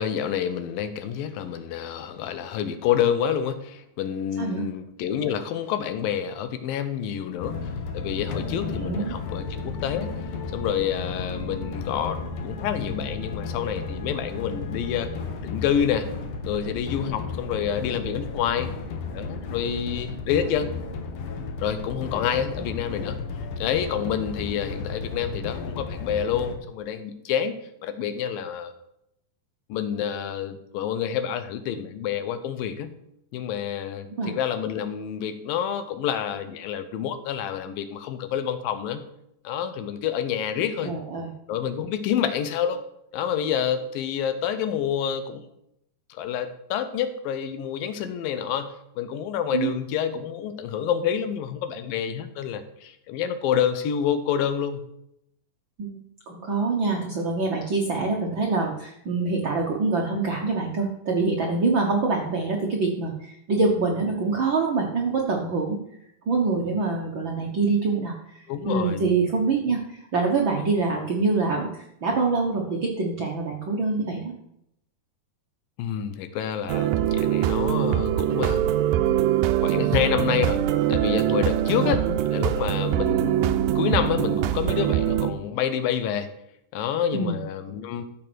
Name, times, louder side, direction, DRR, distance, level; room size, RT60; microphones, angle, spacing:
voice 1, 0.0-7.7 7.9-10.1 10.5-15.1 15.4-16.1 16.4-18.7 19.1-20.7 21.6-23.2 23.6-27.6 27.8-28.7 29.7-33.0 33.3-39.0 39.4-41.0 41.5-42.8 43.1-45.4 46.1-54.8 68.5-69.1 75.8-78.7 79.6-80.6 80.9-86.3 86.7-88.0, left 8 dB, 85° left, 10 dB, 2.7 m, -28 dB
sound 1, 7.4-26.5, left 4 dB, 65° left, 1.4 m, -33 dB
voice 2, 8.7-9.2 34.2-34.3 40.8-41.3 49.5-49.7 55.8-55.9 56.3-65.8 66.3-69.8 70.1-71.7 72.0-74.3 81.7-82.1 87.1-87.4, right 3 dB, 60° right, 0 dB, 1.2 m, -25 dB
sound 2, 76.7-85.3, right 12 dB, 85° right, 2.4 m, -23 dB
14.0 x 5.2 x 6.2 m, 0.78 s
omnidirectional pair, 4.0 m